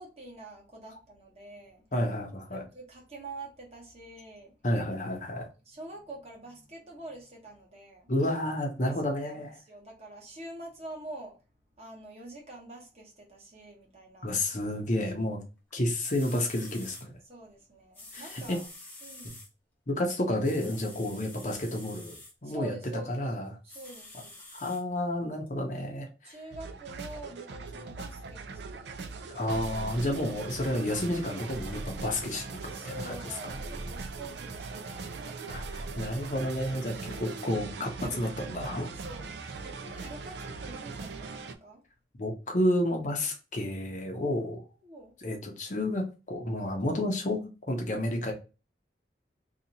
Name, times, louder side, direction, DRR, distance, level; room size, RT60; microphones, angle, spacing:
voice 1, 0.0-1.8 2.5-4.5 5.4-8.1 9.0-11.3 11.8-14.3 15.3-15.4 17.3-18.7 19.0-19.3 22.4-23.3 23.6-24.3 26.2-29.2 32.7-35.3 38.9-41.8 44.2-44.4 44.8-45.1, right 2 dB, 35° right, -2 dB, 1.1 m, -46 dB
voice 2, 1.9-2.6 4.6-5.5 8.1-9.5 14.2-15.4 15.7-17.1 18.1-18.6 19.9-22.7 23.1-23.5 24.5-26.4 29.3-33.2 35.5-38.9 42.2-44.6 45.2-47.4 47.7-48.3, left 1 dB, 45° left, 2 dB, 0.7 m, -31 dB
sound 1, 15.7-15.8 16.0-17.0 17.9-19.5 20.4-22.3 23.7-24.8 25.5-25.6, left 2 dB, 10° left, 0.9 m, -48 dB
sound 2, 26.5-41.5, right 4 dB, 75° right, 0.4 m, -40 dB
2.8 x 2.4 x 3.9 m, 0.31 s
head